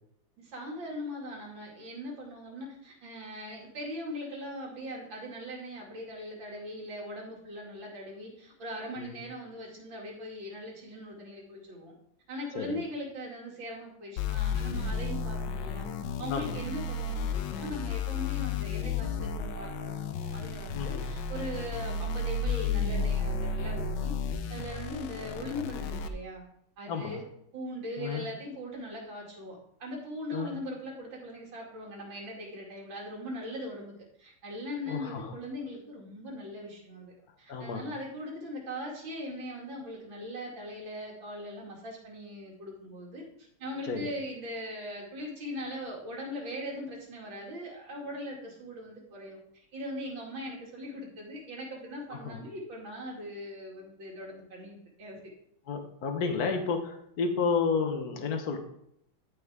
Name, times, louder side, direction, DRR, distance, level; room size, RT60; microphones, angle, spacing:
voice 1, 0.4-11.9 12.3-15.9 16.2-24.1 24.5-26.4 26.8-27.2 27.5-37.1 37.4-43.2 43.6-49.4 49.7-55.2, equal, 80° right, -2 dB, 3.3 m, -40 dB
sound 1, 14.2-26.1, left 5 dB, 70° left, 1.4 m, -33 dB
voice 2, 16.3-16.6 20.7-21.0 26.9-27.2 28.0-28.2 30.3-30.6 34.9-35.3 37.5-37.8 43.9-44.1 52.2-52.4 55.7-58.6, left 5 dB, 55° left, 5 dB, 1.6 m, -31 dB
14.5 x 5.4 x 3.6 m, 0.74 s
omnidirectional pair, 2.1 m